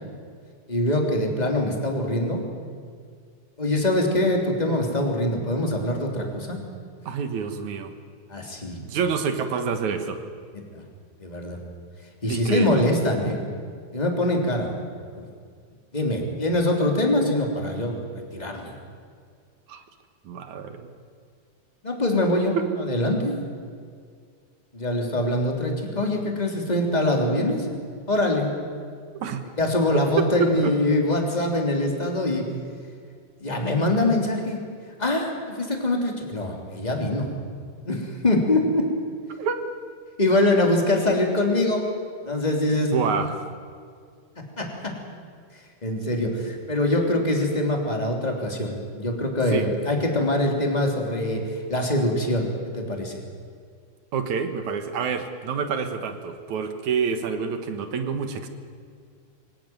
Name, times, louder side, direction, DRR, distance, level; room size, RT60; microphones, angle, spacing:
voice 1, 0.7-2.4 3.6-6.6 8.3-8.8 10.7-10.8 11.2-11.6 12.2-13.4 13.9-14.8 15.1-15.2 15.9-18.7 21.8-23.4 24.7-27.7 28.1-28.5 29.6-32.5 33.4-34.6 35.0-37.3 37.8-38.9 40.2-41.9 42.2-42.9 44.4-44.7 45.8-51.4 51.7-53.1, left 1 dB, 10° left, 1 dB, 3.1 m, -24 dB
voice 2, 7.1-7.9 8.8-10.2 12.3-12.8 19.7-19.8 20.2-20.9 22.5-22.7 29.1-29.4 29.9-30.7 39.4-39.6 42.9-43.5 49.5-49.7 54.1-58.5, right 6 dB, 60° right, 8 dB, 2.6 m, -27 dB
24.5 x 17.5 x 9.4 m, 2.1 s
omnidirectional pair, 4.0 m